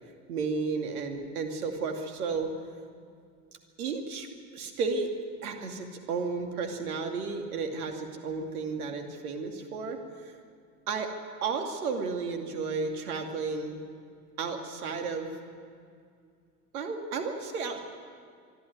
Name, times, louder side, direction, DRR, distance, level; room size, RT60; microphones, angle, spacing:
voice 1, 0.3-2.5 3.8-4.3 4.5-5.1 5.4-10.3 10.9-11.1 11.4-13.8 14.4-15.3 16.7-17.8, right 4 dB, 70° right, 4 dB, 2.6 m, -33 dB
23.5 x 12.5 x 9.4 m, 2.2 s
figure-of-eight pair, 85°, 47 cm